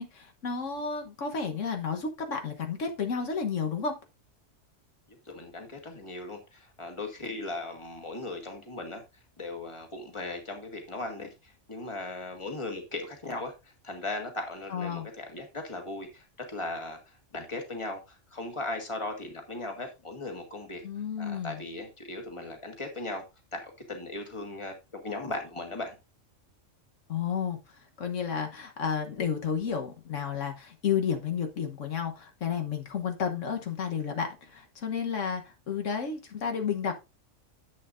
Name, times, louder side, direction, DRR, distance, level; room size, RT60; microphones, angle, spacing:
voice 1, 0.0-3.9 14.7-15.1 20.8-21.6 27.1-27.6 28.0-35.4 35.7-36.9, left 6 dB, 80° left, 4 dB, 1.5 m, -31 dB
voice 2, 5.3-9.0 9.4-20.8 21.2-23.2 23.5-26.0, left 2 dB, 25° left, 4 dB, 1.8 m, -38 dB
10.5 x 7.9 x 2.6 m, 0.25 s
omnidirectional pair, 1.3 m